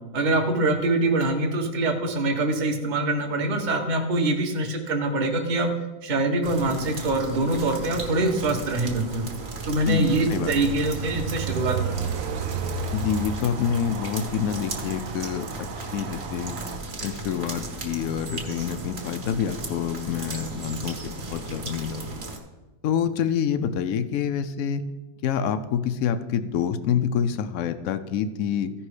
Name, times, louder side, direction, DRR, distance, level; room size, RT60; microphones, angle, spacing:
voice 1, 0.1-5.7 6.0-9.2 9.6-12.0, right 2 dB, 30° right, 3 dB, 1.0 m, -24 dB
sound 1, 6.4-22.4, right 3 dB, 45° right, 1.6 m, -36 dB
Train, 8.7-16.8, right 6 dB, 70° right, 0.8 m, -34 dB
voice 2, 9.8-10.5 12.9-16.6 17.0-22.2 22.8-24.8 25.2-28.7, left 8 dB, 85° left, 9 dB, 0.7 m, -27 dB
15.0 x 5.4 x 4.9 m, 1.1 s
omnidirectional pair, 2.1 m